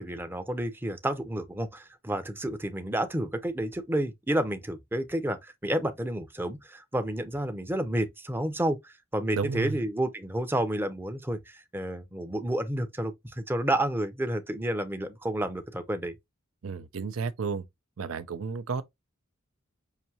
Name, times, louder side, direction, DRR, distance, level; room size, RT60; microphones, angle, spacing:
voice 1, 0.0-16.1, right 1 dB, 10° right, 0.6 m, -30 dB
voice 2, 9.3-9.8 16.6-17.6 18.0-18.8, right 5 dB, 90° right, 0.5 m, -32 dB
5.7 x 2.7 x 2.7 m
head